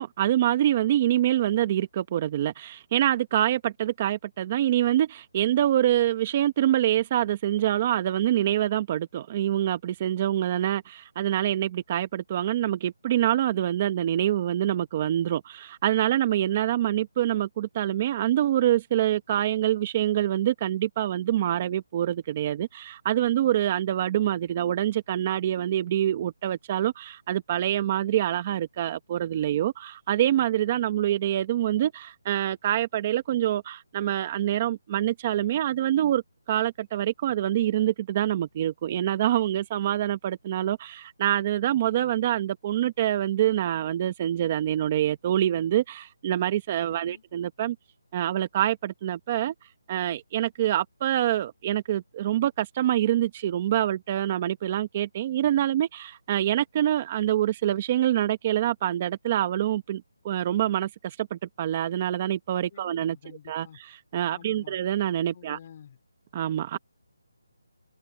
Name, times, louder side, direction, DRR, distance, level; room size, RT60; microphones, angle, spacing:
voice 1, 0.0-47.8 48.1-49.5 49.9-63.2 63.5-65.6 66.3-66.8, right 12 dB, 25° right, 0.9 m, -26 dB
voice 2, 46.9-47.2 62.7-63.8 64.3-64.8 65.3-66.0 66.7-66.8, left 8 dB, 30° left, 4.2 m, -49 dB
hypercardioid pair, 175°, 0 cm